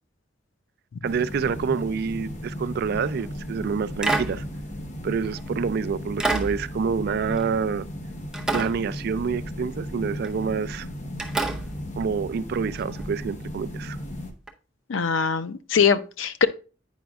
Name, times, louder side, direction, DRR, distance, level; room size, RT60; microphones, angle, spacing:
sound 1, 1.0-14.3, equal, 40° left, 0.8 m, -36 dB
voice 1, 1.0-4.4 5.0-7.9 8.5-10.9 12.0-14.0, right 6 dB, 55° right, 0.3 m, -27 dB
sound 2, 3.1-3.3 4.0-5.5 6.2-8.0 8.3-9.6 10.2-10.5 11.2-13.1 14.5-14.6, right 3 dB, 5° right, 0.6 m, -31 dB
voice 2, 14.9-16.5, left 6 dB, 85° left, 0.5 m, -22 dB
9.0 x 5.0 x 2.3 m
head